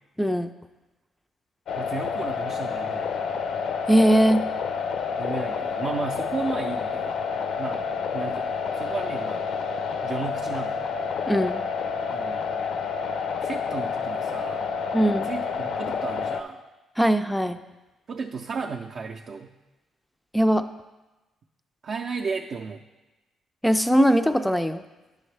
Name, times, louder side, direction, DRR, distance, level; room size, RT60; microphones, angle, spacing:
voice 1, 0.2-0.5 3.9-4.4 11.3-11.6 14.9-15.3 17.0-17.6 20.3-20.6 23.6-24.8, equal, 5° left, 8 dB, 0.4 m, -20 dB
sound 1, 1.7-16.4, left 5 dB, 70° left, 0.5 m, -29 dB
voice 2, 1.7-3.2 5.2-7.2 7.6-9.6 10.0-10.8 12.1-12.5 13.4-14.6 15.2-16.6 18.1-19.5 21.8-22.8, right 5 dB, 50° right, 0 dB, 0.5 m, -34 dB
10.0 x 6.3 x 3.3 m, 1.1 s
cardioid pair, 90°, 0 cm